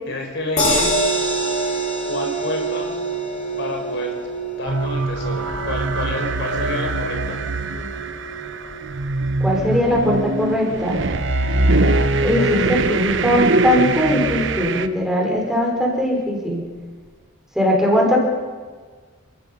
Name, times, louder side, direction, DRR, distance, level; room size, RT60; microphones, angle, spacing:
voice 1, 0.1-1.0 2.1-3.0 3.6-4.1 4.6-7.4, left 1 dB, 60° left, 3 dB, 4.9 m, -29 dB
sound 1, 0.6-12.8 13.2-13.3 13.6-13.7, right 2 dB, 35° left, 7.9 m, -27 dB
sound 2, 4.7-14.9, right 2 dB, 65° right, 1.1 m, -22 dB
voice 2, 9.4-11.0 12.2-16.6 17.5-18.2, equal, 5° right, -2 dB, 5.8 m, -20 dB
29.5 x 17.5 x 5.6 m, 1.5 s
head